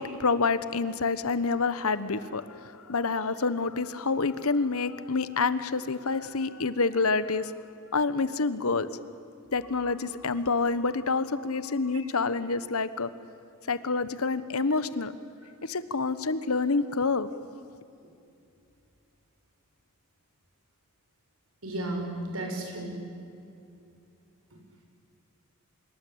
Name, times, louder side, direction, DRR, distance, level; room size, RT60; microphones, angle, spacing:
voice 1, 0.0-7.5 7.9-8.9 9.5-13.1 13.7-15.1 15.6-17.3, left 4 dB, 75° left, 14 dB, 1.1 m, -27 dB
voice 2, 21.6-22.9, right 1 dB, 70° right, 2 dB, 6.3 m, -33 dB
25.0 x 23.5 x 8.7 m, 2.6 s
head